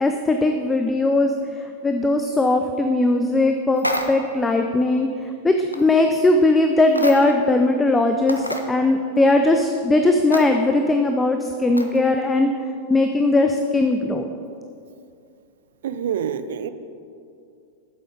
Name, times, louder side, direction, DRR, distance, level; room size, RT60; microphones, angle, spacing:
voice 1, 0.0-12.5 12.9-14.3, left 2 dB, 10° left, 5 dB, 0.5 m, -19 dB
sound 1, 3.7-4.4 5.7-5.9 6.9-7.5 7.9-8.0 8.3-8.7 10.3-10.5 11.8-12.0, equal, 90° left, 0.6 m, -28 dB
voice 2, 15.8-16.7, right 8 dB, 60° right, 12 dB, 0.5 m, -27 dB
8.2 x 7.6 x 5.2 m, 2.4 s
figure-of-eight pair, 90°, 0 cm